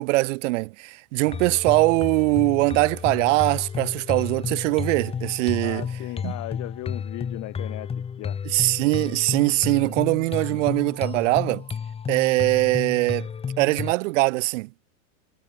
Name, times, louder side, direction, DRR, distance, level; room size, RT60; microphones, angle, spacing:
voice 1, 0.0-5.9 6.2-6.3 8.4-11.6 12.1-13.3 13.6-14.7, right 22 dB, 55° right, 2.9 m, -22 dB
sound 1, 1.2-13.9, left 7 dB, 15° left, 1.2 m, -32 dB
voice 2, 5.6-8.4, left 21 dB, 40° left, 5.4 m, -36 dB
supercardioid pair, 140°, 44 cm